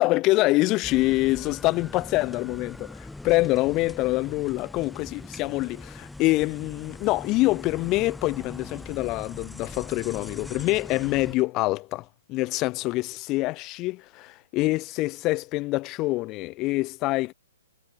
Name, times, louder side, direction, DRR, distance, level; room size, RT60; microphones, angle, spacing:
voice 1, 0.0-17.3, left 20 dB, 30° left, 0.5 m, -25 dB
sound 1, 0.8-11.4, left 2 dB, 5° left, 1.1 m, -41 dB
hypercardioid pair, 130°, 0 cm